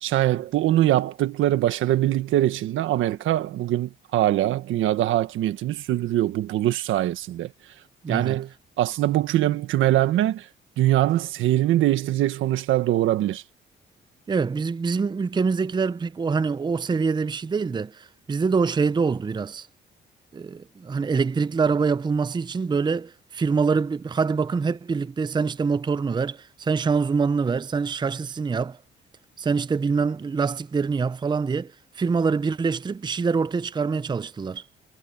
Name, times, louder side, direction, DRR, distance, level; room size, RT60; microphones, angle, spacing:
voice 1, 0.0-7.5 8.1-8.5 8.8-10.5 10.8-13.4, right 14 dB, 85° right, 1.5 m, -22 dB
voice 2, 8.0-8.4 14.3-19.7 20.3-28.8 29.4-34.6, right 5 dB, 20° right, 0.5 m, -25 dB
cardioid pair, 90°, 20 cm